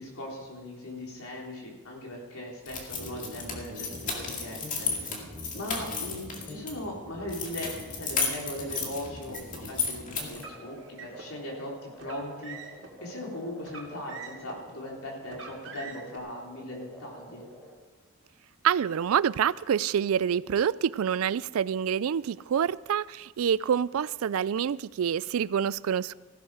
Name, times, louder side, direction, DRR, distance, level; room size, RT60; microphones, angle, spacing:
voice 1, 0.0-5.2 5.5-12.7 13.0-17.5, left 1 dB, 80° left, -2 dB, 3.7 m, -39 dB
sound 1, 2.7-6.7 7.3-10.5, left 5 dB, 35° left, 2.2 m, -33 dB
sound 2, 2.9-17.7, equal, 10° left, 3.3 m, -45 dB
Car, 8.6-9.6 10.3-11.3 11.9-12.9 13.6-14.7 15.2-16.2, right 5 dB, 55° right, 2.4 m, -45 dB
voice 2, 18.6-26.1, right 8 dB, 75° right, 20 dB, 0.3 m, -27 dB
15.5 x 12.5 x 5.0 m, 1.3 s
head